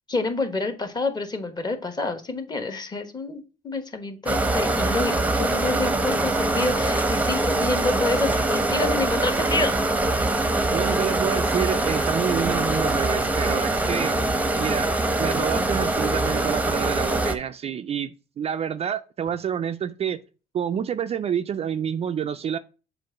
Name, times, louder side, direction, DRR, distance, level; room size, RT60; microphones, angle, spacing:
voice 1, 0.1-9.7, left 3 dB, 25° left, 1.2 m, -28 dB
sound 1, 4.3-17.4, right 2 dB, 10° right, 0.8 m, -23 dB
voice 2, 10.7-14.2 14.6-20.2 20.5-22.6, right 8 dB, 40° right, 0.4 m, -28 dB
7.5 x 2.6 x 5.8 m
cardioid pair, 110°, 17 cm